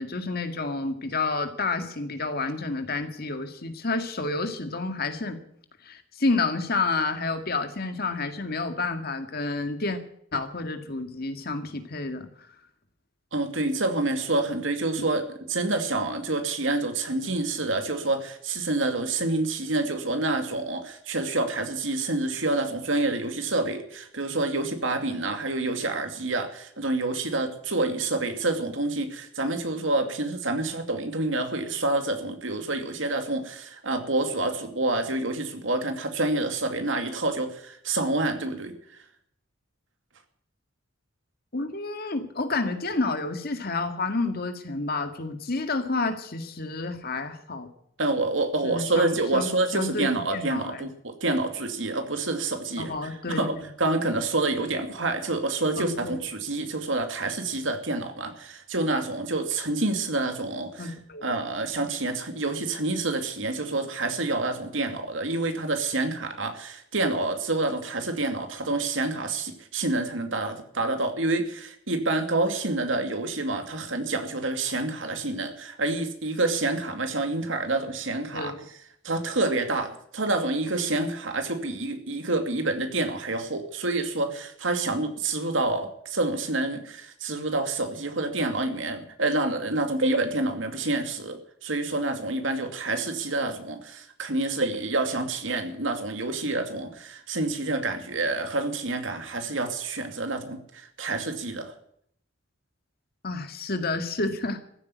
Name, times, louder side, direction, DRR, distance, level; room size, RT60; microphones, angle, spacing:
voice 1, 0.0-5.4 5.8-10.0 10.3-12.3 41.5-47.7 48.6-50.9 52.8-53.7 55.8-56.1 60.8-61.2 78.3-78.6 103.2-104.6, left 3 dB, 50° left, 8 dB, 2.0 m, -30 dB
voice 2, 13.3-38.7 48.0-60.9 61.2-78.5 79.0-101.7, right 2 dB, 75° right, 7 dB, 2.4 m, -28 dB
15.0 x 8.6 x 9.7 m, 0.67 s
head